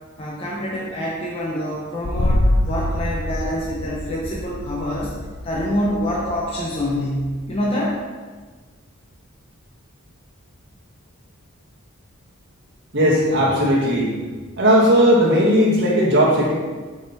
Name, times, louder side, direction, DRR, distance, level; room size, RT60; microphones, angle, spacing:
voice 1, 0.2-5.1 5.4-8.0, equal, 30° left, -5 dB, 0.9 m, -26 dB
sound 1, 2.0-7.6, left 1 dB, 90° left, 0.7 m, -25 dB
voice 2, 12.9-14.1 14.6-16.5, equal, 60° right, -4 dB, 1.8 m, -16 dB
8.0 x 4.3 x 4.1 m, 1.4 s
head